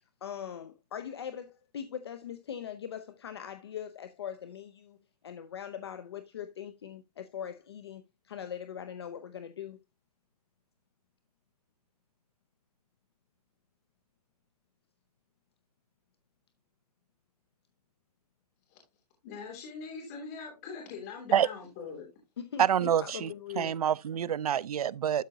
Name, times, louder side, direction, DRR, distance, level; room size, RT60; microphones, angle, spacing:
voice 1, 0.2-5.0 5.2-9.8 22.4-23.8, left 9 dB, 40° left, 0.7 m, -41 dB
voice 2, 19.2-22.1, left 5 dB, 20° left, 3.0 m, -42 dB
voice 3, 22.6-23.3 23.6-25.2, right 9 dB, 65° right, 0.5 m, -27 dB
12.5 x 5.1 x 2.7 m
hypercardioid pair, 180°, 20 cm